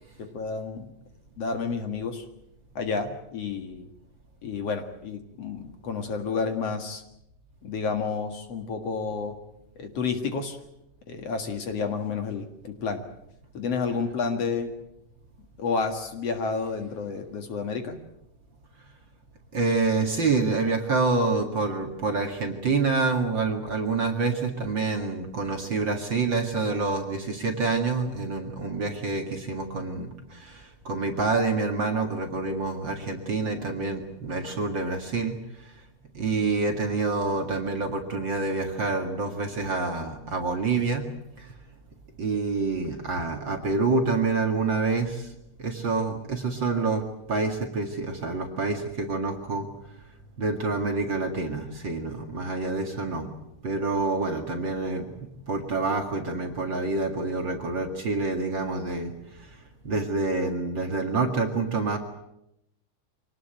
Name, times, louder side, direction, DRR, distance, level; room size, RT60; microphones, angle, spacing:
voice 1, 0.2-0.9 1.4-2.3 2.8-3.9 4.4-7.0 7.6-9.4 9.8-10.6 11.1-13.0 13.5-14.7 15.6-18.0, left 5 dB, 55° left, 6 dB, 2.7 m, -30 dB
voice 2, 19.5-35.4 36.1-41.0 41.4-41.5 42.2-45.3 45.6-49.7 50.4-53.3 53.6-55.1 55.5-59.5 59.8-62.0, right 3 dB, 40° right, 4 dB, 2.4 m, -27 dB
25.0 x 19.0 x 9.0 m, 0.83 s
omnidirectional pair, 3.7 m